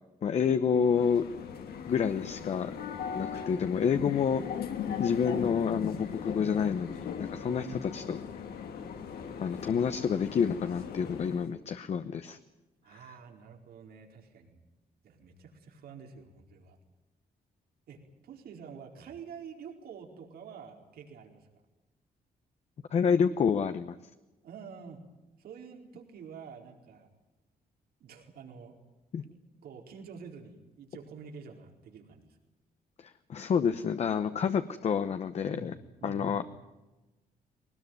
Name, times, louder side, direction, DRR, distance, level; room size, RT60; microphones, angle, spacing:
voice 1, 0.2-1.2 1.9-2.7 3.1-4.4 5.0-8.2 9.4-12.4 22.9-23.9 29.1-29.2 33.0-35.7 36.0-36.4, left 7 dB, 45° left, 9 dB, 0.9 m, -28 dB
sound 1, 0.7-11.5, left 7 dB, 90° left, 3.1 m, -39 dB
voice 2, 7.5-7.9 12.8-14.6 15.0-16.8 17.9-21.6 24.4-25.0 25.4-27.1 28.0-28.8 29.3-32.4 35.5-36.5, right 6 dB, 80° right, 3 dB, 4.5 m, -48 dB
22.0 x 19.5 x 9.4 m, 1.1 s
cardioid pair, 165°, 16 cm